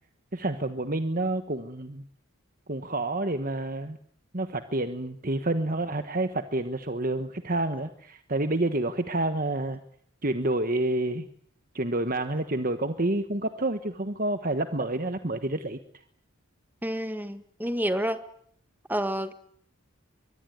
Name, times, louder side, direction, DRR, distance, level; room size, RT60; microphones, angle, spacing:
voice 1, 0.3-2.0 2.7-4.0 4.3-9.8 10.2-11.3 11.7-15.8, right 2 dB, 40° right, 1.4 m, -28 dB
voice 2, 16.8-18.2 18.9-19.3, equal, 10° right, 1.7 m, -29 dB
23.5 x 21.0 x 9.6 m
head